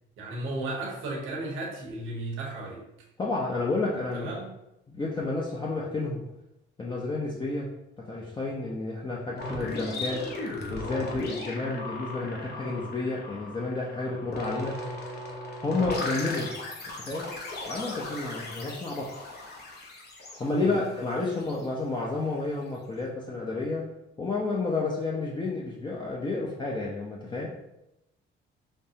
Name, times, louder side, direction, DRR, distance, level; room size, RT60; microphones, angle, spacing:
voice 1, 0.2-2.8 4.1-4.5 9.4-9.7 14.5-14.7 15.8-15.9 18.6-18.7 20.6-20.8, right 2 dB, 85° right, -2 dB, 1.0 m, -35 dB
voice 2, 3.2-4.3 4.9-6.2 6.8-7.7 8.0-10.3 10.7-14.8 15.6-16.5 17.0-17.3 17.7-19.1 20.4-23.9 24.2-27.5, left 3 dB, 25° left, -4 dB, 0.6 m, -30 dB
sound 1, 9.4-22.0, left 2 dB, 55° left, 0.9 m, -38 dB
5.1 x 2.0 x 2.8 m, 0.87 s
cardioid pair, 90°, 20 cm